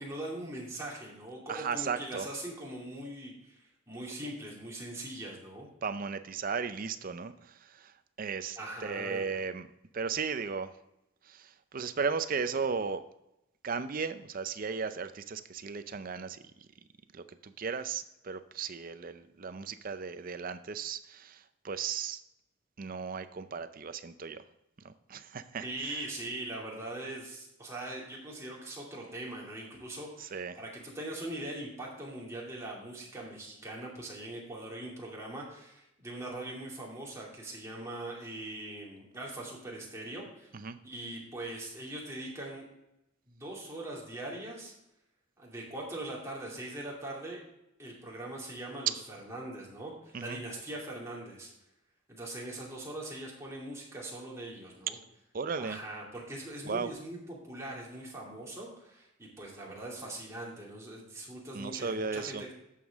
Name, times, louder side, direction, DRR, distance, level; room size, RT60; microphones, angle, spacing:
voice 1, 0.0-5.7 8.6-9.3 25.6-40.5 40.8-42.6 43.3-44.7 45.4-47.4 47.8-51.5 52.1-55.0 55.6-62.5, right 1 dB, 15° right, -4 dB, 2.4 m, -41 dB
voice 2, 1.5-2.3 5.8-7.9 8.2-9.7 9.9-10.7 11.2-13.0 13.6-16.4 17.1-22.2 22.8-24.4 24.8-25.7 30.2-30.6 40.5-40.8 50.1-50.4 55.3-55.8 56.6-56.9 61.5-62.4, right 5 dB, 40° right, 11 dB, 0.5 m, -36 dB
11.0 x 7.3 x 3.5 m, 0.86 s
head